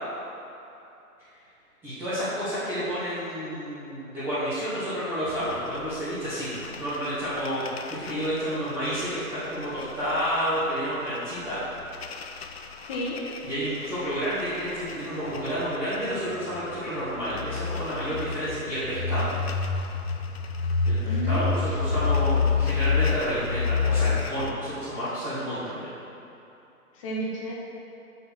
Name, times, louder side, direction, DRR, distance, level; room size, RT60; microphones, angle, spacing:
voice 1, 1.8-11.6 13.4-19.3 20.9-25.9, equal, 5° right, -15 dB, 0.8 m, -30 dB
sound 1, 5.3-24.5, left 5 dB, 45° left, 0.5 m, -30 dB
voice 2, 21.1-21.6 26.9-27.5, right 1 dB, 20° left, -4 dB, 1.0 m, -31 dB
6.9 x 5.7 x 6.2 m, 2.9 s
hypercardioid pair, 155°, 45 cm